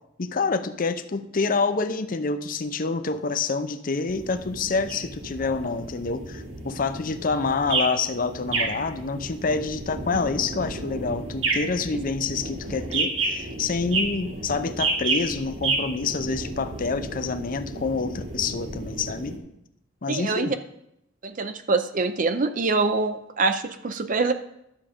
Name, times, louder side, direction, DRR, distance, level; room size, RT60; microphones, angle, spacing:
voice 1, 0.2-19.4 20.0-20.5, left 4 dB, 45° left, 10 dB, 0.6 m, -27 dB
sound 1, 4.1-19.4, right 3 dB, 70° right, 2.1 m, -31 dB
voice 2, 20.1-20.6 21.2-24.3, right 3 dB, 40° right, 9 dB, 0.5 m, -24 dB
11.5 x 7.3 x 5.1 m, 0.78 s
head